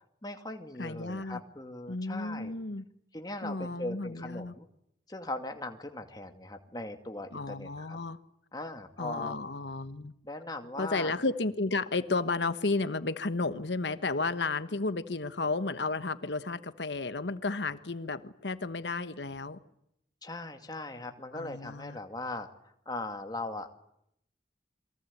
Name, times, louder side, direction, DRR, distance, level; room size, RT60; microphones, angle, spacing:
voice 1, 0.2-2.6 3.1-4.7 5.1-8.0 8.5-9.4 10.2-11.1 20.2-22.5 22.9-23.7, left 2 dB, 20° left, 2.2 m, -39 dB
voice 2, 0.8-1.4 1.9-2.8 3.4-4.5 7.3-8.2 9.0-10.1 10.8-19.6 21.3-22.0, left 3 dB, 85° left, 1.3 m, -33 dB
28.5 x 23.0 x 8.6 m
head